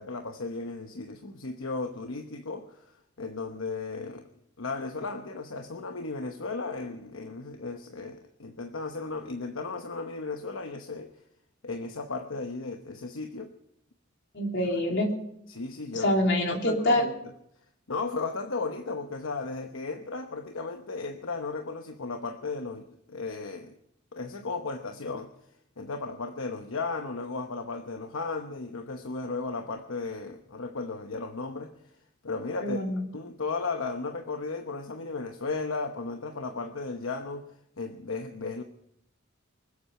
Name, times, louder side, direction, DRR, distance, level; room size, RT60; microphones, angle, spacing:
voice 1, 0.0-2.8 3.2-4.3 4.6-11.1 11.6-13.5 15.5-16.1 16.5-17.0 17.9-23.7 24.1-25.3 25.8-31.7 32.2-38.6, left 3 dB, 80° left, 1.0 m, -35 dB
voice 2, 14.3-15.1 15.9-17.1 32.6-33.0, left 1 dB, 60° left, 3.2 m, -25 dB
25.0 x 8.5 x 5.7 m
head